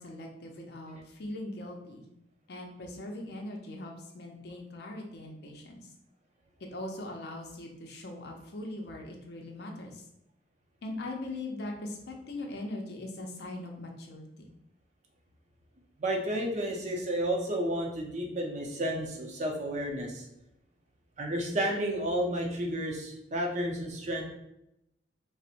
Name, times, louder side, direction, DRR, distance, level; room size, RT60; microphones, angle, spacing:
voice 1, 0.0-2.1 2.5-5.9 6.6-10.0 10.8-14.3, left 2 dB, 65° left, 1 dB, 0.6 m, -40 dB
voice 2, 16.0-20.2 21.2-24.2, right 1 dB, 40° right, 1 dB, 0.6 m, -31 dB
4.1 x 2.1 x 2.5 m, 0.84 s
head